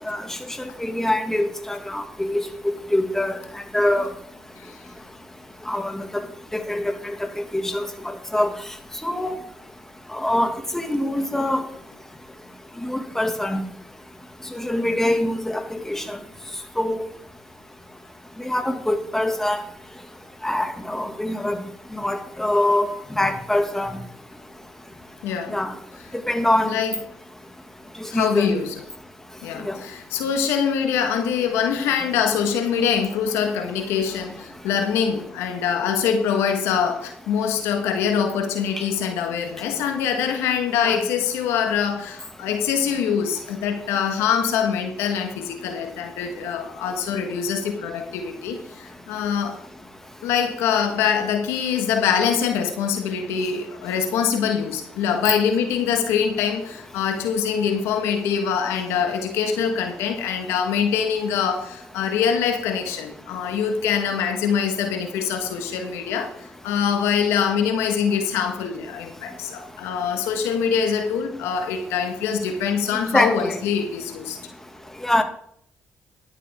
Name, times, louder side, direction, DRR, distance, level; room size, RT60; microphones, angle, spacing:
voice 1, 0.8-2.5 2.9-3.4 3.7-4.1 5.7-6.0 6.5-7.1 7.5-8.5 9.0-9.4 10.1-11.6 12.8-13.6 14.5-16.2 16.8-17.1 18.4-19.6 20.4-21.6 22.0-22.9 23.2-24.0 25.5-25.7 26.1-26.7 28.1-28.5 29.6-29.8 40.8-41.0 73.1-73.6 75.0-75.2, left 1 dB, 10° left, 5 dB, 2.2 m, -24 dB
voice 2, 25.2-25.6 26.7-26.9 28.1-28.8 29.4-49.6 50.2-74.4, left 7 dB, 85° left, 5 dB, 1.5 m, -24 dB
11.5 x 11.5 x 3.7 m, 0.66 s
supercardioid pair, 60°, 4 cm